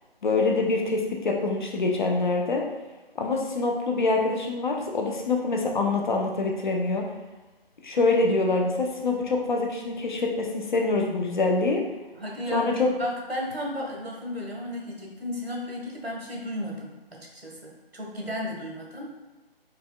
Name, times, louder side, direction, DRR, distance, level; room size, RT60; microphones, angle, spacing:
voice 1, 0.2-2.6 3.2-7.1 7.8-11.8 12.5-12.9, left 3 dB, 50° left, 1 dB, 0.6 m, -25 dB
voice 2, 12.1-19.1, left 1 dB, 85° right, -1 dB, 1.2 m, -34 dB
4.8 x 2.4 x 2.2 m, 1.1 s
figure-of-eight pair, 150°, 30 cm